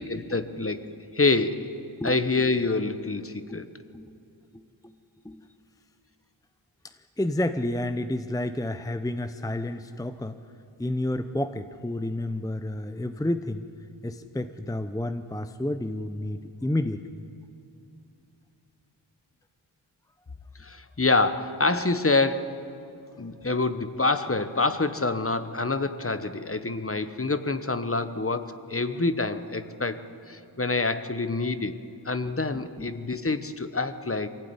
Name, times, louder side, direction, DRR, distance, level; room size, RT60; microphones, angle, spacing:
voice 1, 0.0-1.7 2.0-3.7 20.6-22.7 23.2-31.8 32.0-34.3, left 3 dB, 25° left, 11 dB, 1.1 m, -27 dB
voice 2, 4.5-4.9 5.2-5.4 7.2-10.4 10.8-13.7 14.0-17.2 32.8-32.9, left 1 dB, 5° left, 9 dB, 0.8 m, -30 dB
23.0 x 16.5 x 9.7 m, 2.6 s
wide cardioid pair, 65°, 49 cm